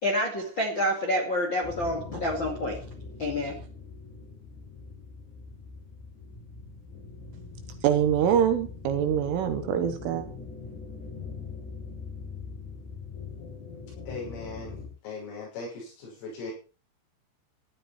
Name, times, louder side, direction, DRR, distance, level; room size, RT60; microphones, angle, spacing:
voice 1, 0.0-2.8 3.2-3.6, left 1 dB, 35° left, 1.9 m, -28 dB
sound 1, 1.6-14.9, left 4 dB, 55° left, 8.9 m, -42 dB
voice 2, 7.8-10.3, right 9 dB, 75° right, 3.7 m, -24 dB
voice 3, 14.1-16.5, left 3 dB, 85° left, 8.4 m, -39 dB
14.5 x 12.0 x 4.4 m
omnidirectional pair, 5.9 m